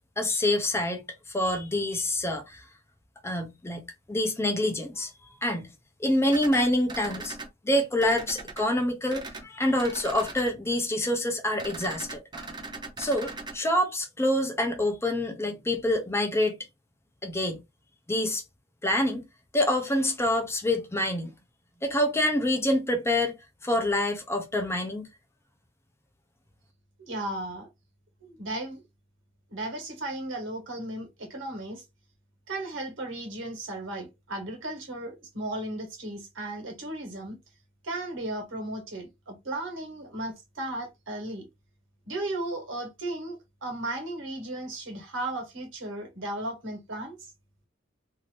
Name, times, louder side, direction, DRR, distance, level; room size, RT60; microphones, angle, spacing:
voice 1, 0.2-1.0 1.3-2.6 3.2-5.1 5.4-5.7 6.0-7.4 7.6-12.5 13.0-16.6 17.2-17.6 18.1-18.4 18.8-19.2 19.5-21.3 21.8-23.3 23.6-25.1, left 1 dB, 15° left, 0.6 m, -26 dB
sound 1, 6.3-7.5 8.0-8.6 9.1-9.4 9.8-10.5 11.6-13.5, right 3 dB, 25° right, 0.7 m, -39 dB
voice 2, 27.0-27.7 28.2-28.8 29.5-31.8 32.5-37.4 37.8-41.5 42.0-47.2, right 1 dB, 80° right, 1.3 m, -35 dB
2.7 x 2.6 x 3.2 m
head